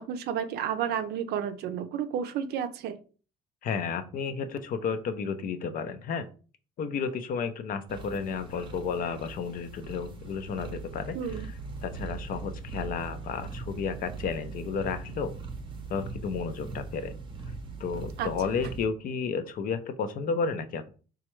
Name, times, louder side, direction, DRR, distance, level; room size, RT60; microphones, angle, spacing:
voice 1, 0.0-3.0 11.1-11.5 18.2-18.3, right 8 dB, 70° right, 10 dB, 0.5 m, -31 dB
voice 2, 3.6-6.3 6.8-11.2 11.8-15.3 15.9-17.1 17.8-20.9, left 5 dB, 55° left, 10 dB, 0.5 m, -32 dB
sound 1, 7.9-18.8, right 3 dB, 30° right, 0.7 m, -40 dB
4.2 x 2.3 x 3.0 m, 0.38 s
cardioid pair, 110°, 17 cm